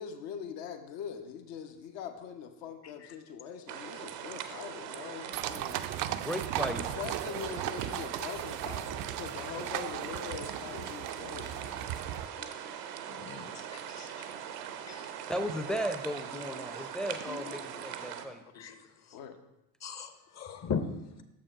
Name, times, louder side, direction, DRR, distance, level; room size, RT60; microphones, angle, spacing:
voice 1, 0.0-5.9 6.5-11.9 12.4-12.5 15.3-15.8 16.4-16.9 17.3-17.8 19.1-19.4, left 8 dB, 60° left, 7 dB, 0.9 m, -43 dB
sound 1, 3.7-18.3, right 9 dB, 75° right, 0.7 m, -41 dB
sound 2, 5.3-12.3, right 12 dB, 45° right, 0.4 m, -37 dB
voice 2, 6.1-6.8 15.3-18.4, equal, ahead, 8 dB, 0.6 m, -35 dB
voice 3, 13.2-14.3 14.9-15.1 18.5-18.8 19.8-21.2, left 5 dB, 35° left, 9 dB, 0.8 m, -38 dB
6.9 x 5.6 x 4.8 m, 0.93 s
figure-of-eight pair, 50°, 49 cm